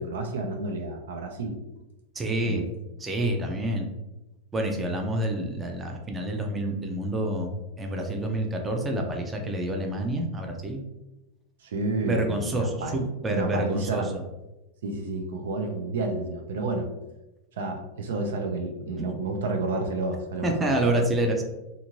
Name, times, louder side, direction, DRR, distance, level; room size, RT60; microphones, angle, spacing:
voice 1, 0.0-1.6 2.4-2.7 11.6-14.1 14.8-16.9 17.6-21.1, right 3 dB, 90° right, 4 dB, 0.5 m, -30 dB
voice 2, 2.2-2.7 3.0-3.9 4.5-7.5 7.8-10.8 12.0-14.2 19.1-19.2 20.4-21.4, right 1 dB, 15° right, 2 dB, 0.4 m, -28 dB
2.6 x 2.5 x 2.9 m, 1.0 s
supercardioid pair, 155°, 0 cm